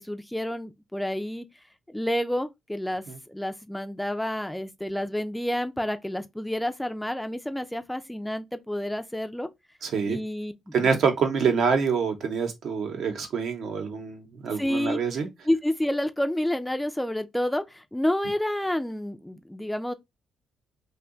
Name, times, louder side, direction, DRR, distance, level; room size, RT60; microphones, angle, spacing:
voice 1, 0.0-1.5 1.9-9.5 10.1-10.9 14.6-15.0 15.4-19.9, left 1 dB, 5° left, 0.3 m, -29 dB
voice 2, 9.8-10.2 10.7-15.3, right 6 dB, 70° right, 0.8 m, -26 dB
2.7 x 2.2 x 3.7 m
cardioid pair, 90°, 0 cm